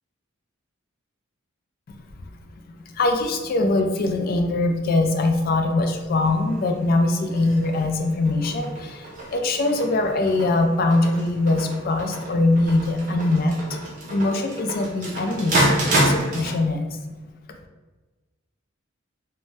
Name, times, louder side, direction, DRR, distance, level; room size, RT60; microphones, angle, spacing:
voice 1, 2.9-13.8 14.1-15.7 16.0-17.0, left 2 dB, 45° left, 5 dB, 0.3 m, -22 dB
sound 1, 6.1-16.5, right 1 dB, 40° right, 0.6 m, -28 dB
2.6 x 2.1 x 3.2 m, 1.2 s
head